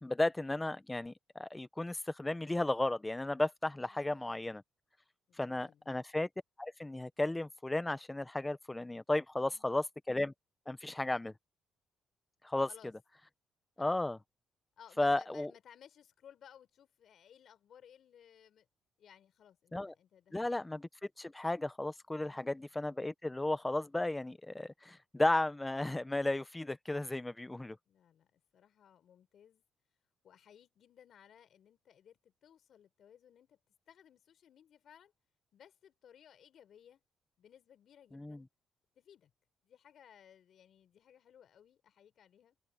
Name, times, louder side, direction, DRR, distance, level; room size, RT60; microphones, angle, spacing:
voice 1, 0.0-4.6 5.4-6.3 6.6-10.3 10.7-11.3 12.4-12.7 13.8-14.2 15.0-15.5 19.7-19.9 20.3-20.8 21.2-27.8 38.1-38.4, left 2 dB, 15° left, 1.0 m, -34 dB
voice 2, 3.9-4.4 5.3-5.9 9.3-9.9 12.7-12.9 13.8-14.0 14.8-18.7 19.0-20.6 22.2-22.7 27.8-29.6 30.2-33.6 33.9-35.1 35.5-37.0 37.4-38.5 38.9-39.3 39.6-42.6, left 9 dB, 65° left, 5.1 m, -61 dB
cardioid pair, 90°, 0 cm